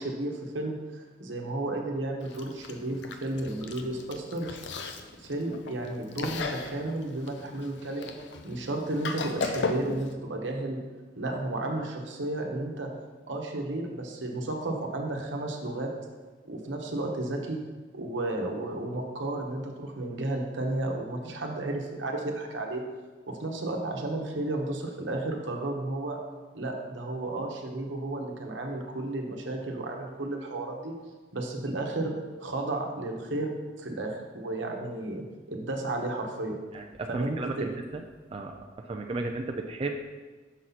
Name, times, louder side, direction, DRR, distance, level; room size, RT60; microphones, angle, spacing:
voice 1, 0.0-4.6 5.2-8.1 8.4-10.8 11.2-12.9 13.3-15.9 16.4-17.6 17.9-22.8 23.3-26.2 26.5-30.9 31.3-32.1 32.4-36.6 37.1-37.7, right 2 dB, 80° right, 1 dB, 1.0 m, -33 dB
Chewing mastication, 2.2-10.1, left 4 dB, 70° left, 0.5 m, -37 dB
voice 2, 36.7-38.0 38.3-40.0, right 2 dB, 30° right, 2 dB, 0.4 m, -34 dB
6.2 x 5.7 x 4.0 m, 1.3 s
head